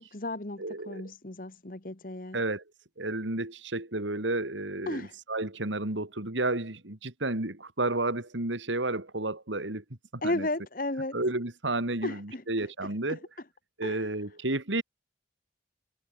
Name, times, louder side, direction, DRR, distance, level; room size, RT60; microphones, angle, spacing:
voice 1, 0.0-2.4 4.9-5.1 10.2-11.2 12.0-13.2 13.8-14.1, left 2 dB, 45° left, 1.5 m, -35 dB
voice 2, 0.6-1.1 2.3-2.6 3.0-9.8 10.1-10.5 11.1-13.2 13.8-14.8, right 2 dB, 90° right, 3.1 m, -31 dB
head